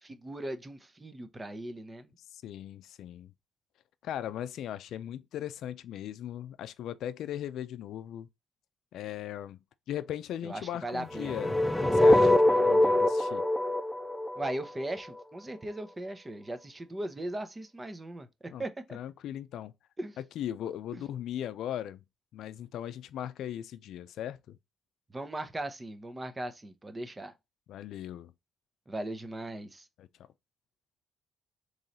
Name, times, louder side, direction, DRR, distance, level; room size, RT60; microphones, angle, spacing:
voice 1, 0.0-2.1 10.4-11.4 14.4-19.0 20.0-20.2 20.9-21.0 25.1-27.3 28.9-29.9, right 1 dB, 20° right, 0.8 m, -38 dB
voice 2, 2.3-3.3 4.0-8.3 8.9-9.6 9.9-13.4 18.5-18.6 18.9-19.7 20.4-22.0 22.3-24.6 27.7-28.3 30.0-30.1, left 11 dB, 80° left, 0.4 m, -38 dB
sound 1, 11.1-15.2, left 1 dB, 5° left, 0.4 m, -24 dB
3.8 x 3.1 x 4.1 m
cardioid pair, 90°, 0 cm